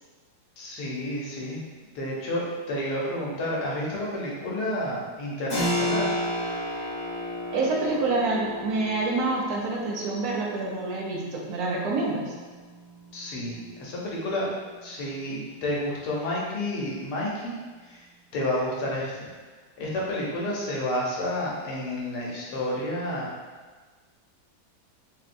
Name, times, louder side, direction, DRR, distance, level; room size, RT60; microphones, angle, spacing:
voice 1, 0.6-1.6 1.9-6.1 13.1-14.5 14.8-17.5 17.8-18.1 18.3-19.3 19.8-23.3, left 1 dB, 75° left, -4 dB, 1.3 m, -30 dB
Keyboard (musical), 5.5-15.9, left 1 dB, 40° left, 0.6 m, -34 dB
voice 2, 7.5-12.3, right 3 dB, 70° right, -2 dB, 1.1 m, -27 dB
4.1 x 2.1 x 2.5 m, 1.4 s
omnidirectional pair, 1.8 m